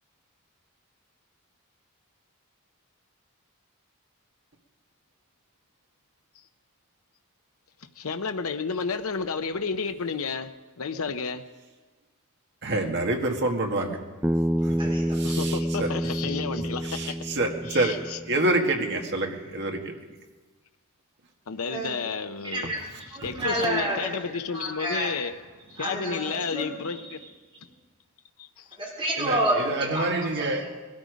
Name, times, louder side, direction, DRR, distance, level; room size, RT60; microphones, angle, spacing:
voice 1, 8.0-10.5 10.8-11.4 15.2-17.2 17.7-18.2 21.5-22.7 23.2-25.3 25.7-27.2 28.4-28.7, left 5 dB, 70° left, 7 dB, 0.7 m, -31 dB
voice 2, 12.6-14.0 14.6-14.8 15.1-15.9 16.6-18.0 18.3-20.0 23.4-23.5 29.2-30.7, right 2 dB, 55° right, 3 dB, 1.9 m, -27 dB
Bass guitar, 14.2-18.6, equal, 5° right, 0.4 m, -28 dB
voice 3, 14.6-15.2 21.7-21.9 22.4-24.1 24.5-25.1 25.7-27.2 27.6-27.7 28.8-30.7, right 1 dB, 25° right, -2 dB, 3.9 m, -30 dB
20.5 x 13.0 x 5.2 m, 1.3 s
head